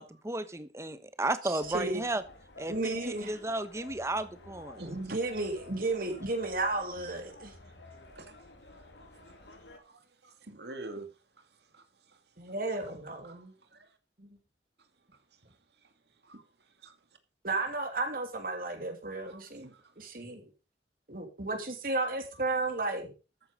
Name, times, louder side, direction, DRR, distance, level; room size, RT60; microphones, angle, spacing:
voice 1, 0.0-2.2 2.6-4.8, right 2 dB, 15° right, 1.1 m, -34 dB
voice 2, 1.4-2.0 2.7-3.4 4.8-7.5 12.4-13.5 14.2-14.3 17.4-20.5 21.1-23.1, right 2 dB, 55° right, 2.9 m, -33 dB
sound 1, 1.6-9.8, left 2 dB, 80° left, 2.7 m, -51 dB
voice 3, 4.8-5.2 7.6-11.1 11.3-12.5 13.2-14.0 15.1-16.5 19.3-20.1 22.3-22.4, right 2 dB, 70° right, 2.3 m, -50 dB
13.5 x 9.4 x 5.1 m
head